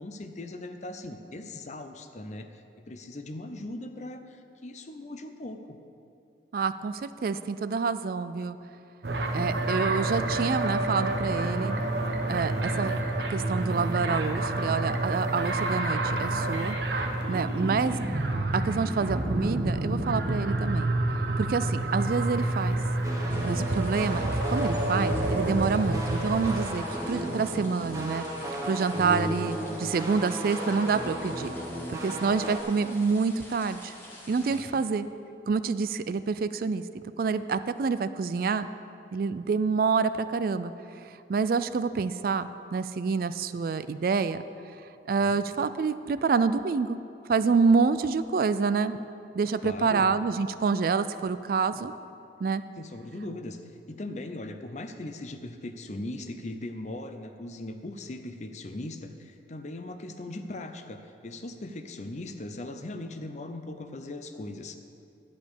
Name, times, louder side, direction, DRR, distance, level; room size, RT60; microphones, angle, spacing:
voice 1, 0.0-5.8 17.3-17.7 27.1-27.4 34.5-34.8 45.2-45.4 49.6-50.1 52.8-53.6 53.9-64.8, left 2 dB, 40° left, 7 dB, 0.6 m, -39 dB
voice 2, 6.5-8.6 9.3-11.8 12.3-12.9 13.3-16.8 17.3-18.0 18.5-20.9 21.4-22.8 23.4-28.3 28.6-31.5 31.9-33.9 34.3-35.1 35.5-36.8 37.2-38.7 39.1-40.7 41.0-44.4 45.1-47.0 47.3-49.0 49.3-51.9 52.4-52.6, right 5 dB, 55° right, 13 dB, 0.3 m, -27 dB
sound 1, 9.0-26.7, right 1 dB, 75° right, 1.0 m, -29 dB
sound 2, 23.0-32.6, equal, 20° right, 1.2 m, -34 dB
sound 3, 23.3-34.6, left 1 dB, 15° left, 1.6 m, -49 dB
11.5 x 5.1 x 8.6 m, 2.6 s
head